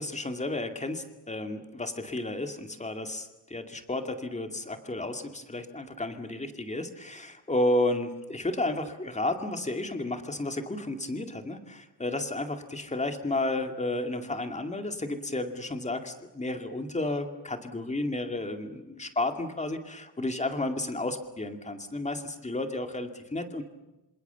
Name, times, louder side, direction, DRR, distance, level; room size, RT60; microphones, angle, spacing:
voice 1, 0.0-23.6, left 2 dB, 15° left, 6 dB, 2.3 m, -32 dB
27.0 x 27.0 x 7.0 m, 1.0 s
wide cardioid pair, 175°, 41 cm